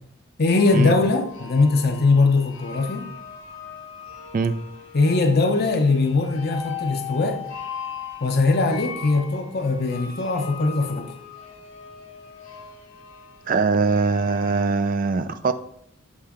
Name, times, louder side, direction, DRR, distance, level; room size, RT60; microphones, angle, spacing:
voice 1, 0.4-3.1 4.9-7.4 8.2-11.2, left 3 dB, 50° left, 4 dB, 0.6 m, -21 dB
sound 1, 0.6-14.7, left 7 dB, 70° left, 0.9 m, -39 dB
voice 2, 13.5-15.5, right 4 dB, 45° right, 12 dB, 0.4 m, -22 dB
7.3 x 4.3 x 3.6 m, 0.73 s
head